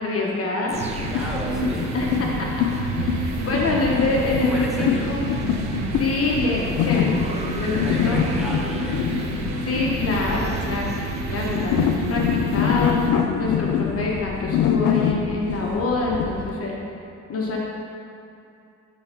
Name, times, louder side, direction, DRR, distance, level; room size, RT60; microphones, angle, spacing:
voice 1, 0.0-0.8 1.9-2.3 2.6-5.3 5.9-8.2 9.6-10.9 11.3-13.0 13.4-16.8 17.3-17.6, left 3 dB, 50° left, -3 dB, 1.0 m, -26 dB
voice 2, 0.6-1.9 2.9-3.6 4.4-5.2 7.6-9.4, equal, ahead, -4 dB, 1.2 m, -34 dB
sound 1, 0.7-11.8 12.1-12.3, right 3 dB, 20° right, 0.6 m, -38 dB
sound 2, 0.7-13.1, right 3 dB, 65° right, 0.8 m, -30 dB
sound 3, 1.0-16.5, left 8 dB, 70° left, 0.5 m, -25 dB
6.2 x 3.5 x 5.6 m, 2.6 s
cardioid pair, 90°, 30 cm